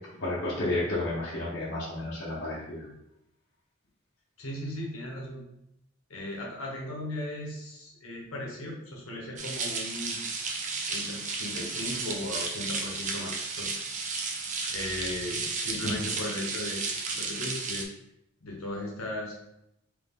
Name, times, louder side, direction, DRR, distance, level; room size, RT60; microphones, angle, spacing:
voice 1, 0.2-2.8 15.8-16.0, left 1 dB, 50° left, -8 dB, 1.0 m, -31 dB
voice 2, 4.4-5.4 6.1-10.2 10.9-13.7 14.7-16.9 17.1-17.8 18.4-19.3, left 1 dB, 80° left, -1 dB, 1.1 m, -37 dB
sound 1, 9.4-17.8, right 4 dB, 35° right, 0.5 m, -33 dB
3.6 x 3.3 x 3.6 m, 0.83 s
head